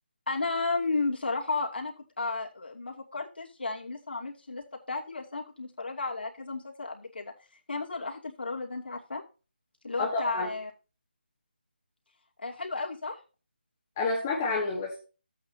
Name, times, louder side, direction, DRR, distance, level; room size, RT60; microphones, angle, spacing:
voice 1, 0.3-7.3 7.7-9.2 9.8-10.7 12.4-13.2, left 3 dB, 70° left, -1 dB, 2.6 m, -33 dB
voice 2, 10.0-10.5 14.0-15.0, left 3 dB, 15° left, -2 dB, 1.1 m, -29 dB
13.0 x 8.5 x 2.8 m, 0.34 s
figure-of-eight pair, 175°, 6 cm